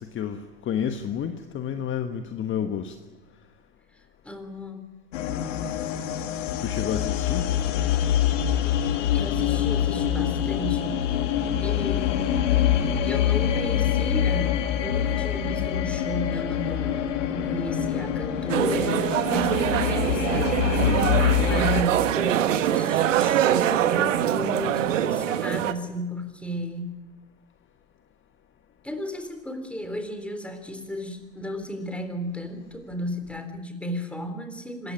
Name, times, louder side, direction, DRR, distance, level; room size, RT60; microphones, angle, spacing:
voice 1, 0.0-3.0 6.6-7.5 20.8-21.2, left 8 dB, 30° left, 7 dB, 1.4 m, -30 dB
voice 2, 3.9-4.8 9.1-11.0 11.6-20.6 21.4-27.0 28.8-34.9, equal, 5° left, 7 dB, 3.7 m, -34 dB
sound 1, 5.1-21.8, left 10 dB, 65° left, 2.3 m, -25 dB
sound 2, 18.5-25.7, right 11 dB, 70° right, 1.4 m, -24 dB
25.5 x 15.0 x 9.9 m, 1.2 s
hypercardioid pair, 90°, 39 cm